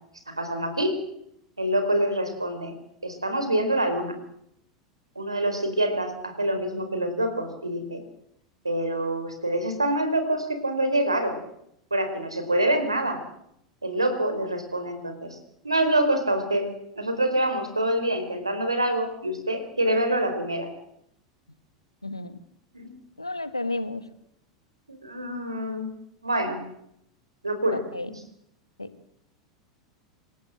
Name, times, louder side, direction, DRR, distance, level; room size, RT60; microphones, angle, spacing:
voice 1, 0.3-1.0 1.6-2.7 3.0-4.1 5.1-8.0 8.6-11.4 11.9-13.2 13.8-15.4 15.6-16.7 17.0-20.7 22.7-22.9 24.9-25.9 26.2-26.6 27.4-27.8 28.1-28.2, right 1 dB, 85° right, 8 dB, 4.6 m, -26 dB
voice 2, 22.0-22.4 23.2-24.0 27.7-28.1 28.8-28.9, left 2 dB, 85° left, 13 dB, 1.6 m, -32 dB
27.5 x 16.5 x 7.8 m, 0.75 s
figure-of-eight pair, 85°, 3 cm